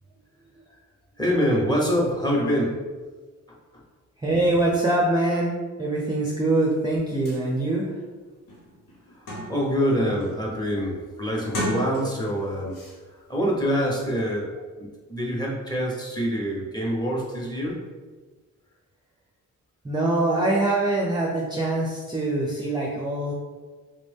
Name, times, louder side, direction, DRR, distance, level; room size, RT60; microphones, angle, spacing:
voice 1, 1.2-2.8 3.5-3.8 9.1-12.8 13.3-14.5 14.8-17.8, equal, 15° left, -3 dB, 1.1 m, -25 dB
voice 2, 4.2-8.0 19.8-23.3, right 2 dB, 15° right, -3 dB, 0.5 m, -24 dB
sound 1, 6.9-7.0 7.3-7.4 8.0-8.1 8.5-9.8 10.2-10.6 11.4-12.4 12.7-13.0, equal, 85° left, 1.0 m, -33 dB
3.8 x 2.5 x 3.5 m, 1.4 s
cardioid pair, 80°, 32 cm